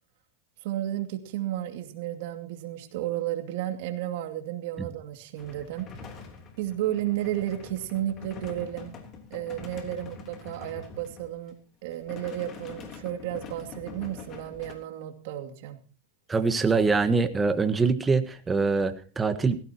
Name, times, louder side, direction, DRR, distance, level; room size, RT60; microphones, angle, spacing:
voice 1, 0.6-5.9 6.6-8.9 9.3-11.5 11.8-15.8, right 12 dB, 65° right, 7 dB, 2.5 m, -33 dB
sound 1, 5.4-11.5 11.9-14.7, left 4 dB, 35° left, 3.3 m, -44 dB
voice 2, 16.3-19.6, right 4 dB, 15° right, 10 dB, 1.4 m, -24 dB
18.0 x 16.0 x 3.0 m, 0.39 s
hypercardioid pair, 125°, 0 cm